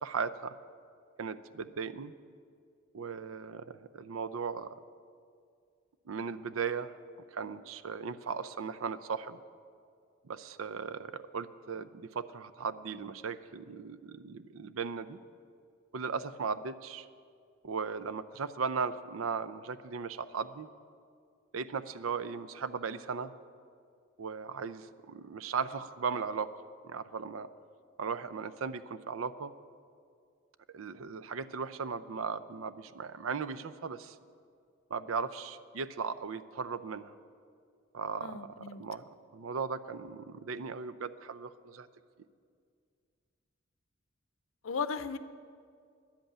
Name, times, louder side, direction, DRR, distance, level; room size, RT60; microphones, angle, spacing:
voice 1, 0.0-0.5 1.2-2.1 2.9-4.8 6.1-6.9 7.3-9.4 10.2-15.2 15.9-17.1 17.6-20.7 21.5-23.3 24.2-27.5 28.0-29.5 30.7-34.2 34.9-37.1 37.9-41.9, right 5 dB, 90° right, 14 dB, 0.5 m, -37 dB
voice 2, 38.2-38.8 44.6-45.2, left 5 dB, 85° left, 12 dB, 0.6 m, -36 dB
10.5 x 8.0 x 9.8 m, 2.2 s
head